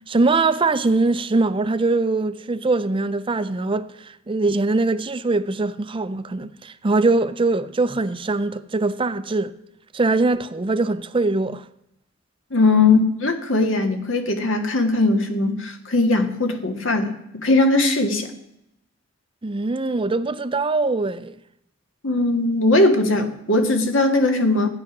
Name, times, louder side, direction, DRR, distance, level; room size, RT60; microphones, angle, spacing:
voice 1, 0.1-9.5 9.9-11.6 19.4-21.4, right 3 dB, 25° right, 0.5 m, -22 dB
voice 2, 12.5-18.3 22.0-24.7, left 2 dB, 75° left, 1.7 m, -19 dB
13.0 x 9.6 x 6.0 m
head